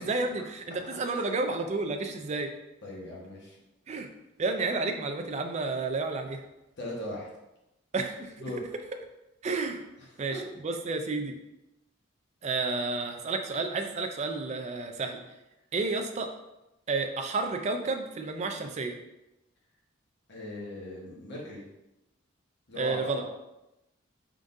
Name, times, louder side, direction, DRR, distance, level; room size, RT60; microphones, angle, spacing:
voice 1, 0.0-2.5 3.9-4.1 4.4-6.4 7.9-8.3 9.4-9.8 10.2-11.3 12.4-15.2 15.7-16.3 16.9-19.0 22.8-23.2, right 3 dB, 35° right, 5 dB, 0.3 m, -31 dB
voice 2, 2.8-3.6 6.8-7.3 8.4-8.6 10.0-10.5 20.3-21.6 22.7-23.3, left 1 dB, 55° left, -3 dB, 1.1 m, -39 dB
3.8 x 3.6 x 2.6 m, 0.94 s
head